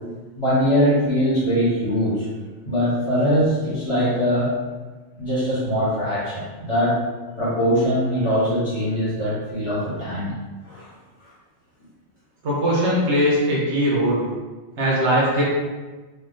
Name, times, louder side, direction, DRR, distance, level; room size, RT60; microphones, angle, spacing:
voice 1, 0.4-2.3 2.6-4.6 5.2-7.0 7.4-10.3 10.6-10.9, equal, 30° left, -10 dB, 1.0 m, -22 dB
voice 2, 12.4-14.2 14.8-15.4, equal, 70° right, -6 dB, 1.1 m, -20 dB
3.2 x 2.2 x 2.6 m, 1.3 s
omnidirectional pair, 1.2 m